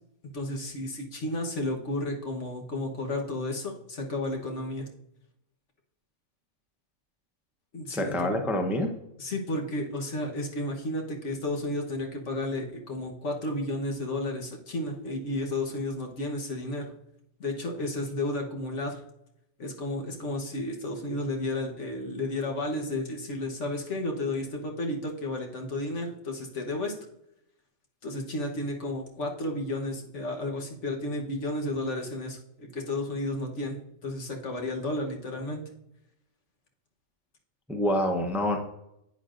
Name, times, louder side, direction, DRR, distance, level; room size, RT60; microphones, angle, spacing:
voice 1, 0.3-4.9 7.7-8.3 9.2-16.9 17.4-19.0 19.6-26.9 28.0-35.6, left 1 dB, 60° left, 1 dB, 1.5 m, -32 dB
voice 2, 7.9-8.9 37.7-38.6, left 1 dB, ahead, 4 dB, 0.7 m, -26 dB
11.0 x 8.6 x 2.5 m, 0.82 s
omnidirectional pair, 1.4 m